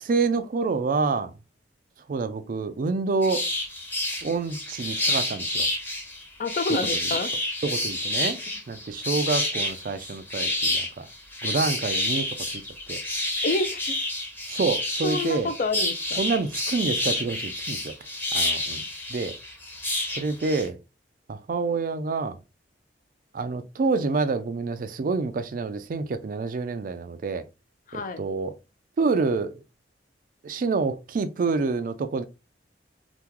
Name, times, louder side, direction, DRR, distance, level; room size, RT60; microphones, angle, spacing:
voice 1, 0.0-1.3 2.1-3.5 4.2-5.7 7.6-8.4 8.7-11.1 11.4-12.4 12.9-13.0 14.5-15.5 16.2-17.9 18.3-18.8 19.1-19.3 20.2-20.8 21.3-22.4 23.3-27.4 27.9-28.5 29.0-29.6 30.4-32.2, right 4 dB, 50° right, 0.4 m, -27 dB
sound 1, 3.2-20.7, left 1 dB, 10° left, 0.8 m, -29 dB
voice 2, 6.4-7.3 13.4-14.0 15.0-16.2 27.9-28.2, left 2 dB, 45° left, 0.4 m, -28 dB
2.9 x 2.1 x 3.6 m
head